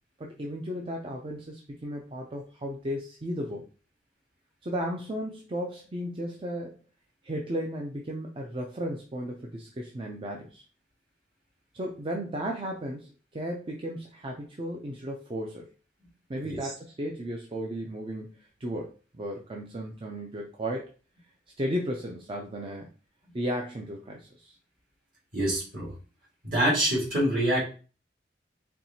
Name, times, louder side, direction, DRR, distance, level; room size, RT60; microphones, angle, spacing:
voice 1, 0.2-3.7 4.6-6.8 7.2-10.6 11.7-15.7 16.3-20.9 21.6-22.9 23.3-24.6, equal, 30° right, 0 dB, 0.5 m, -35 dB
voice 2, 25.3-25.9 26.4-27.6, right 1 dB, 50° right, -5 dB, 1.8 m, -25 dB
4.4 x 3.2 x 2.7 m, 0.36 s
head